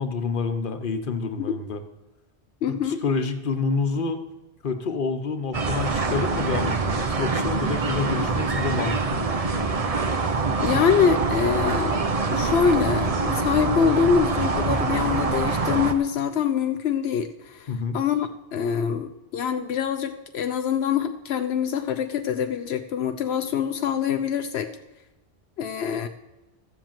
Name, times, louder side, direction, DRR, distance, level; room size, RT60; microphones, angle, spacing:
voice 1, 0.0-1.8 2.7-4.2 4.6-9.3 17.7-18.0, left 4 dB, 55° left, 7 dB, 1.2 m, -28 dB
voice 2, 2.6-3.0 10.6-11.9 12.3-17.7 17.9-24.7 25.6-26.1, left 7 dB, 85° left, 7 dB, 0.9 m, -24 dB
sound 1, 5.5-15.9, right 4 dB, 35° right, 0.9 m, -25 dB
13.5 x 7.7 x 7.4 m, 1.1 s
omnidirectional pair, 1.0 m